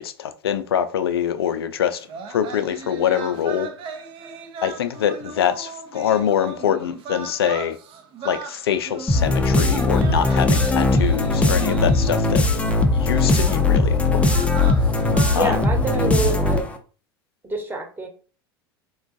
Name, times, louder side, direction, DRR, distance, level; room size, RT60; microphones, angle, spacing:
voice 1, 0.0-2.0 2.3-3.7 4.6-7.8 8.2-12.4 12.9-14.2 15.3-15.6, left 9 dB, 85° left, 0.4 m, -24 dB
sound 1, 2.0-12.4 13.4-13.6 14.2-16.3, right 4 dB, 45° right, 0.6 m, -37 dB
sound 2, 9.1-16.8, left 2 dB, 10° left, 0.5 m, -19 dB
voice 2, 15.3-16.7 17.4-18.1, right 3 dB, 15° right, 1.1 m, -26 dB
3.7 x 2.3 x 2.5 m
hypercardioid pair, 85°, 12 cm